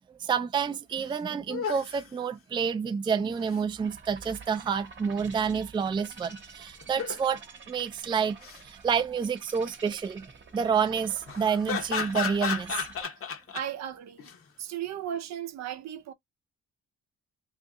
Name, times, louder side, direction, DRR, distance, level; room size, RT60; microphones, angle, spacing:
voice 1, 0.1-12.8, right 6 dB, 15° right, 0.3 m, -29 dB
sound 1, 0.7-0.8 1.0-1.1 1.5-2.1 3.1-3.6 6.8-7.4 8.2-8.6 11.3-13.6 14.2-14.4, left 6 dB, 45° left, 0.8 m, -33 dB
sound 2, 3.8-13.0, right 4 dB, 40° right, 1.0 m, -49 dB
voice 2, 13.5-14.3 14.6-16.1, right 10 dB, 60° right, 0.6 m, -35 dB
2.6 x 2.5 x 3.4 m
cardioid pair, 90°, 30 cm